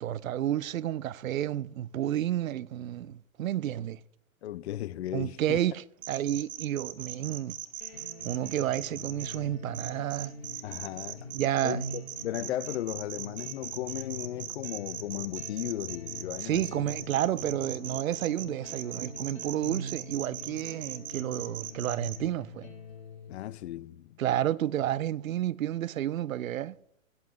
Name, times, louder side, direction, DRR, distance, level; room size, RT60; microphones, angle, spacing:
voice 1, 0.0-4.0 5.1-7.6 8.2-10.3 11.3-11.8 16.4-22.7 24.2-26.7, right 12 dB, 75° right, 0.5 m, -31 dB
voice 2, 4.4-5.6 10.6-11.3 11.6-16.9 23.3-24.2, left 13 dB, 55° left, 0.5 m, -36 dB
sound 1, 6.0-9.4 9.7-22.2, right 13 dB, 40° right, 0.8 m, -39 dB
sound 2, 7.8-23.7, left 2 dB, 75° left, 3.8 m, -44 dB
16.0 x 7.0 x 3.1 m
hypercardioid pair, 120°, 41 cm